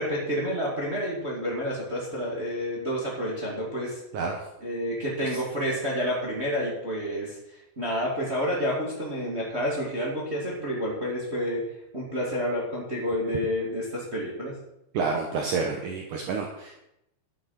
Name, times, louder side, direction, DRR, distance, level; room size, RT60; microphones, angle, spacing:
voice 1, 0.0-4.0 4.6-7.4 7.8-11.6 11.9-14.5, equal, 20° right, -4 dB, 1.9 m, -29 dB
voice 2, 14.9-16.8, right 4 dB, 75° right, 2 dB, 1.8 m, -29 dB
11.5 x 8.7 x 5.9 m, 0.84 s
omnidirectional pair, 5.2 m